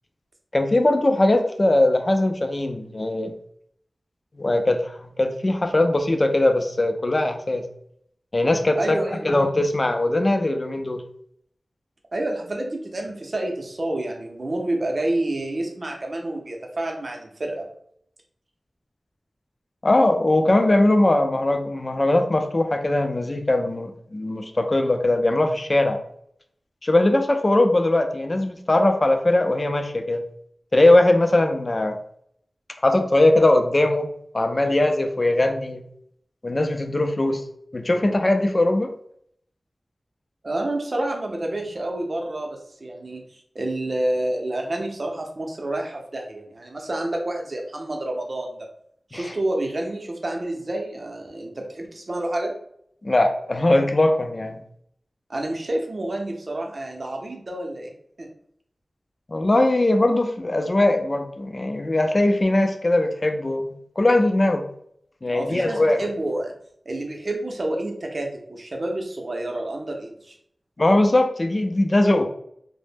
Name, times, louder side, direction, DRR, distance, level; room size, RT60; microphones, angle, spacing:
voice 1, 0.5-3.3 4.4-7.6 8.3-11.0 19.8-26.0 26.8-30.2 30.7-32.0 32.8-35.8 36.4-37.4 37.7-38.9 49.1-49.3 53.0-54.6 59.3-64.7 65.2-66.1 70.8-72.3, left 1 dB, 45° left, 5 dB, 0.4 m, -20 dB
voice 2, 8.7-9.3 12.1-17.7 40.4-48.7 49.1-52.5 55.3-57.9 58.2-58.3 65.3-66.5 66.9-70.4, right 1 dB, 60° right, 2 dB, 0.5 m, -29 dB
2.1 x 2.0 x 3.3 m, 0.68 s
cardioid pair, 45°, 0 cm